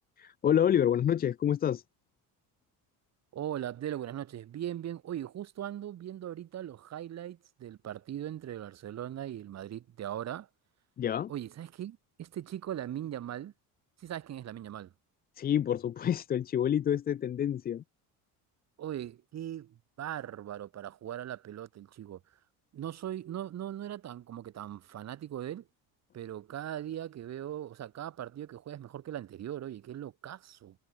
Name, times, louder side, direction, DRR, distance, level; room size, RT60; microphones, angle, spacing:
voice 1, 0.2-1.8 11.0-11.3 15.4-17.8, left 9 dB, 25° left, 0.4 m, -28 dB
voice 2, 3.3-10.5 11.3-13.5 14.0-14.9 18.8-22.2 22.7-25.7 26.1-30.8, right 11 dB, 45° right, 3.2 m, -39 dB
cardioid pair, 165°, 38 cm